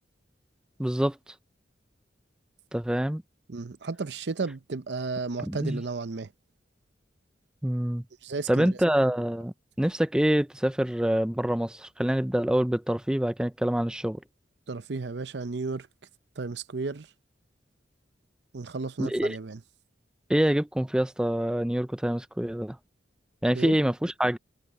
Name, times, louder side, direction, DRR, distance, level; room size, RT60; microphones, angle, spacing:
voice 1, 0.8-1.2 2.7-3.2 5.5-5.8 7.6-8.0 8.5-14.2 19.0-19.4 20.3-22.8 23.4-24.4, right 1 dB, 5° right, 0.3 m, -26 dB
voice 2, 3.5-6.3 8.2-8.8 14.7-15.9 16.4-17.1 18.5-19.6 23.5-23.8, right 4 dB, 65° right, 0.7 m, -33 dB
head